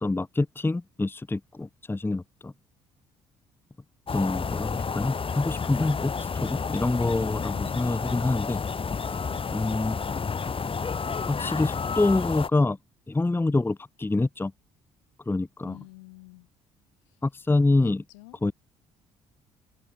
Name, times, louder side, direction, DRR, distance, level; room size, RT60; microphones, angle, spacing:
voice 1, 0.0-2.5 4.1-8.6 9.5-10.0 11.3-12.8 13.1-14.5 15.3-15.8 17.2-18.0 18.4-18.5, left 2 dB, 15° left, 1.0 m, -26 dB
sound 1, 4.1-12.5, left 5 dB, 35° left, 4.0 m, -30 dB
voice 2, 15.6-16.5 17.7-18.5, left 28 dB, 80° left, 7.7 m, -49 dB
hypercardioid pair, 50°, 16 cm